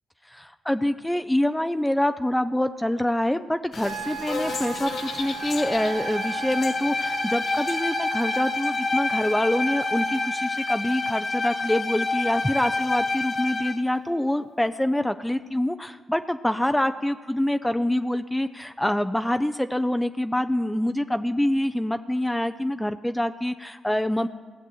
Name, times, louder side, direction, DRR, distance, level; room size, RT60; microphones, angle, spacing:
voice 1, 0.3-24.3, left 1 dB, 10° left, 9 dB, 0.6 m, -25 dB
sound 1, 3.7-8.7, left 5 dB, 65° left, 0.9 m, -36 dB
Wind instrument woodwind instrument, 3.8-10.4, right 8 dB, 90° right, 1.4 m, -37 dB
Bowed string instrument, 5.2-13.8, left 3 dB, 40° left, 1.4 m, -28 dB
16.5 x 7.4 x 7.9 m, 1.4 s
supercardioid pair, 50°, 0 cm